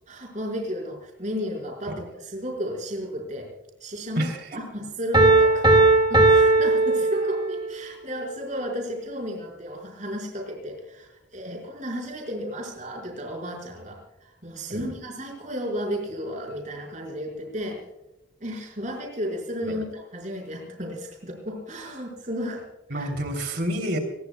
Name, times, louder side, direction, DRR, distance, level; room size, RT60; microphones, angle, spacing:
voice 1, 0.0-3.5 3.8-17.8 18.4-23.1, equal, 40° right, 0 dB, 5.0 m, -33 dB
Piano, 5.1-7.7, right 2 dB, 25° right, 2.3 m, -18 dB
voice 2, 22.9-24.0, equal, 55° right, 5 dB, 3.3 m, -28 dB
25.0 x 21.0 x 2.3 m, 0.96 s
head